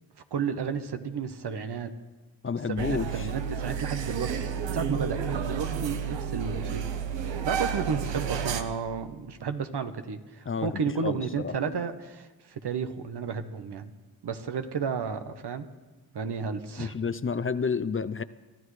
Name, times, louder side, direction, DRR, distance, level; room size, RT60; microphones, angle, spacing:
voice 1, 0.3-1.9 2.7-6.8 7.4-13.9 14.2-15.7 16.1-16.9, right 6 dB, 65° right, 8 dB, 1.1 m, -32 dB
voice 2, 2.4-3.3 10.5-11.5 16.8-18.2, left 5 dB, 30° left, 15 dB, 0.6 m, -30 dB
sound 1, 2.8-8.6, right 7 dB, 85° right, 1.0 m, -31 dB
24.0 x 12.5 x 3.3 m, 1.2 s
supercardioid pair, 40°, 43 cm